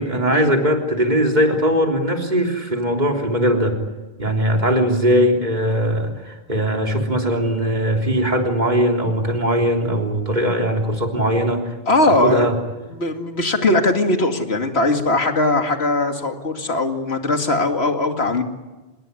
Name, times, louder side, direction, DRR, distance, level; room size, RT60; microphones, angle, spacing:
voice 1, 0.0-3.8 4.2-11.7 12.2-12.5, equal, 45° right, 2 dB, 3.7 m, -20 dB
voice 2, 11.9-12.5 12.9-18.4, left 2 dB, 80° left, 5 dB, 2.6 m, -20 dB
26.5 x 20.5 x 9.8 m, 1.2 s
omnidirectional pair, 1.1 m